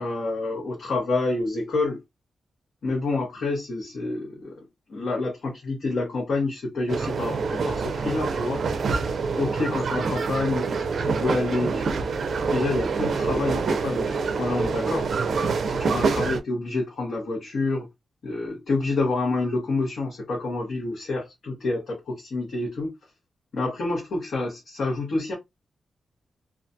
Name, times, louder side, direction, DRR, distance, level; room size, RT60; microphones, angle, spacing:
voice 1, 0.0-2.0 2.8-4.6 4.9-8.6 9.4-10.7 11.0-11.9 12.5-15.1 15.6-17.9 18.2-22.9 23.5-25.3, left 3 dB, 65° left, 0.9 m, -28 dB
sound 1, 6.9-16.4, right 4 dB, 60° right, 0.4 m, -26 dB
2.3 x 2.1 x 2.6 m
wide cardioid pair, 125°, 0 cm